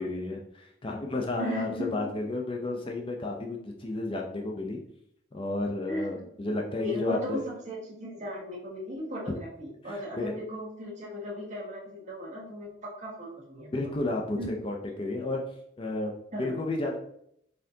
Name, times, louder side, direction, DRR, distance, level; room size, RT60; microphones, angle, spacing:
voice 1, 0.0-4.8 5.3-7.4 10.1-10.4 13.7-15.4 15.8-17.0, left 2 dB, 25° left, 1 dB, 0.4 m, -32 dB
voice 2, 1.4-2.1 5.9-6.2 6.6-13.7 14.4-14.5 16.3-16.6, equal, 35° right, -4 dB, 1.3 m, -37 dB
4.2 x 3.6 x 2.7 m, 0.71 s
head